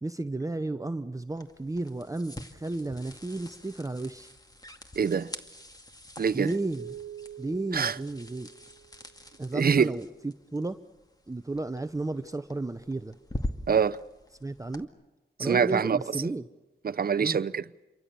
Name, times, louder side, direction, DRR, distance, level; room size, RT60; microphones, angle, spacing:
voice 1, 0.0-4.3 6.3-7.0 7.4-8.5 9.4-10.8 11.3-13.2 14.4-14.9 15.4-16.5 17.2-17.4, right 2 dB, 15° right, 0.9 m, -33 dB
sound 1, 1.3-14.8, left 1 dB, 20° left, 2.3 m, -44 dB
voice 2, 5.0-5.3 6.2-6.5 7.7-7.9 9.5-9.9 13.7-14.0 15.4-16.0 16.8-17.6, right 6 dB, 45° right, 0.8 m, -24 dB
sound 2, 6.8-9.3, right 9 dB, 85° right, 1.2 m, -46 dB
28.0 x 23.5 x 7.0 m
cardioid pair, 65°, 21 cm